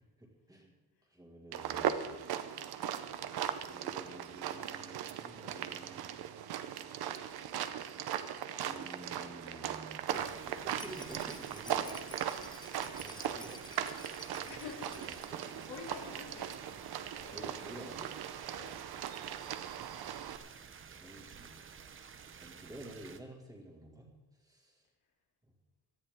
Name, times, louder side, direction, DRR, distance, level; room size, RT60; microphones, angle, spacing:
voice 1, 0.2-0.8 1.1-2.0 3.6-6.1 8.6-12.2 13.0-14.5 15.0-15.7 17.2-18.1 20.9-21.5 22.3-24.1 24.4-24.8 25.4-25.5, right 1 dB, 10° right, 0 dB, 2.1 m, -51 dB
sound 1, 1.5-20.4, right 10 dB, 70° right, 0.9 m, -39 dB
sound 2, 10.1-23.2, right 6 dB, 35° right, 0.7 m, -52 dB
Rattle, 10.7-16.4 16.6-16.7 17.0-17.1, left 2 dB, 10° left, 0.8 m, -53 dB
voice 2, 14.5-15.2 15.6-16.6 17.0-18.0 18.5-18.9, left 4 dB, 75° left, -1 dB, 3.3 m, -48 dB
18.5 x 13.5 x 3.7 m, 1.1 s
wide cardioid pair, 180°, 39 cm